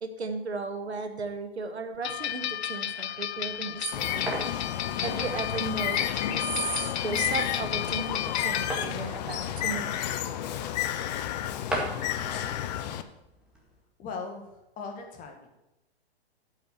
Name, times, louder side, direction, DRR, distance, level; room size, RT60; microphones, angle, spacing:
voice 1, 0.0-4.4 5.0-9.9, right 4 dB, 90° right, 7 dB, 1.4 m, -35 dB
sound 1, 2.0-9.1, left 10 dB, 85° left, 0.5 m, -33 dB
sound 2, 3.4-13.8, right 1 dB, 5° right, 1.9 m, -41 dB
Bird, 3.9-13.0, left 11 dB, 40° left, 0.7 m, -32 dB
voice 2, 14.0-15.5, left 4 dB, 25° left, 3 dB, 1.7 m, -39 dB
8.8 x 5.9 x 7.2 m, 0.93 s
hypercardioid pair, 125°, 32 cm